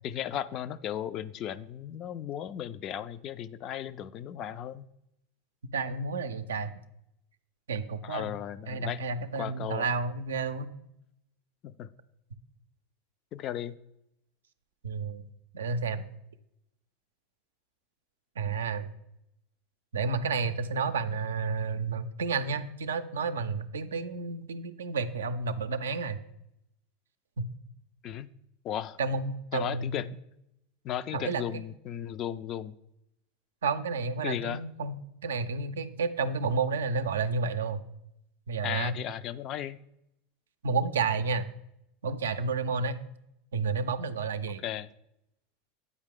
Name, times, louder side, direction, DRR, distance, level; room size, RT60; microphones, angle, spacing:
voice 1, 0.0-4.8 8.0-9.0 9.4-9.9 11.6-11.9 13.3-13.8 28.0-28.3 28.6-29.0 29.5-30.1 30.8-32.8 34.2-34.6 38.6-39.8 44.6-44.9, left 10 dB, 45° left, 15 dB, 0.3 m, -35 dB
voice 2, 5.7-6.7 7.7-8.3 8.7-10.7 14.8-15.2 15.5-16.0 18.4-18.9 19.9-26.2 27.4-27.5 29.0-30.1 31.1-31.6 33.6-35.0 35.2-37.8 38.5-39.0 40.6-41.5 42.0-43.0 43.5-44.6, right 4 dB, 85° right, 10 dB, 0.4 m, -31 dB
8.2 x 4.7 x 3.6 m, 0.82 s
hypercardioid pair, 90°, 0 cm